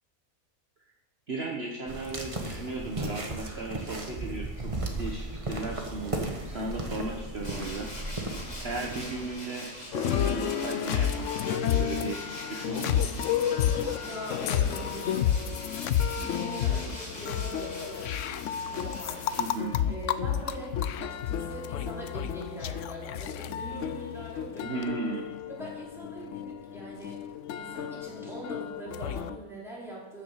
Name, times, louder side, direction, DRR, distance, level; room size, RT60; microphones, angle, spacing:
voice 1, 1.3-7.9 8.6-13.0 19.4-19.7 24.6-25.3, right 3 dB, 45° right, 0 dB, 1.4 m, -36 dB
sound 1, 1.9-9.3, right 2 dB, 25° right, 1.5 m, -35 dB
Tools, 7.4-19.9, left 1 dB, 30° left, 2.5 m, -43 dB
sound 2, 9.9-29.4, left 9 dB, 65° left, 0.9 m, -31 dB
voice 2, 14.0-15.4 16.1-18.2 18.7-19.4 19.9-24.8 25.5-27.2 27.5-30.2, right 1 dB, ahead, -7 dB, 4.7 m, -42 dB
13.0 x 7.1 x 7.2 m, 1.0 s
omnidirectional pair, 1.5 m